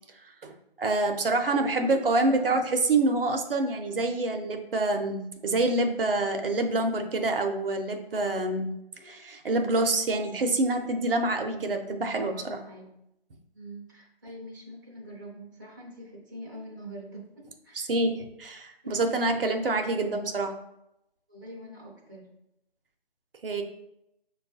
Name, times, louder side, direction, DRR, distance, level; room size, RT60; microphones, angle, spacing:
voice 1, 0.8-8.7 9.0-12.6 17.7-20.5 23.4-23.6, right 2 dB, 65° right, 5 dB, 0.6 m, -26 dB
voice 2, 1.5-2.7 12.2-12.9 13.5-17.9 18.8-19.3 21.3-22.3, equal, 20° right, -5 dB, 0.5 m, -44 dB
6.2 x 2.3 x 2.7 m, 0.83 s
figure-of-eight pair, 160°, 30 cm